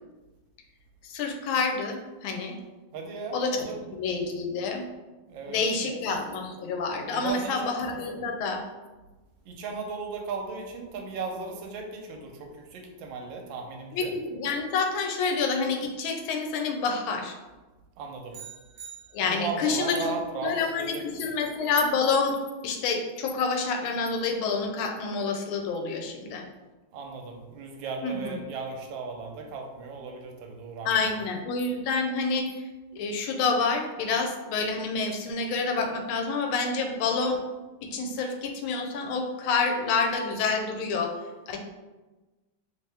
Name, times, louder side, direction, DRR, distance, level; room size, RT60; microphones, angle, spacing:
voice 1, 1.0-2.6 3.3-3.6 4.0-4.8 5.5-8.6 13.9-17.3 19.1-20.2 20.4-22.4 22.6-26.4 28.0-28.4 30.8-32.5 32.9-37.4 37.9-41.1 41.5-41.6, left 4 dB, 90° left, 3 dB, 1.4 m, -28 dB
voice 2, 2.9-3.7 5.3-5.9 7.1-7.5 9.4-14.1 18.0-18.3 19.2-21.1 26.9-30.9, right 4 dB, 75° right, 2 dB, 1.3 m, -36 dB
sound 1, 18.3-19.7, right 8 dB, 60° right, 1.0 m, -46 dB
3.2 x 2.8 x 3.3 m, 1.2 s
omnidirectional pair, 2.2 m